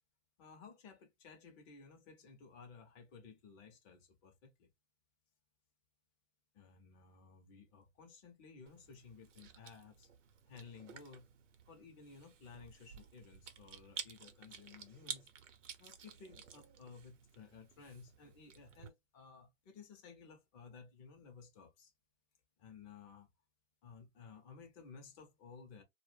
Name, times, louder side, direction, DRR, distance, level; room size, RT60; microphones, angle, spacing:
voice 1, 0.4-4.7 6.5-10.1 10.5-11.3 11.7-15.3 15.8-21.9 22.6-23.3 23.8-25.8, left 5 dB, 20° left, 0.5 m, -56 dB
Chewing mastication, 8.7-18.9, right 7 dB, 70° right, 0.8 m, -52 dB
2.1 x 2.1 x 3.2 m
hypercardioid pair, 140°, 38 cm